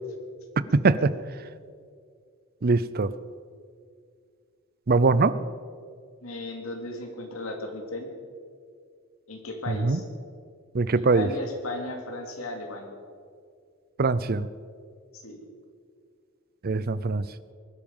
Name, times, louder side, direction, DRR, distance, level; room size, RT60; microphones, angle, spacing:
voice 1, 0.7-1.1 2.6-3.1 4.9-5.4 9.7-10.0 10.7-11.3 14.0-14.5 16.6-17.2, right 3 dB, 45° right, 16 dB, 0.6 m, -22 dB
voice 2, 6.2-8.1 9.3-10.0 10.9-13.0 15.1-15.4, left 2 dB, 90° left, 3 dB, 2.7 m, -36 dB
21.0 x 12.0 x 5.5 m, 2.2 s
head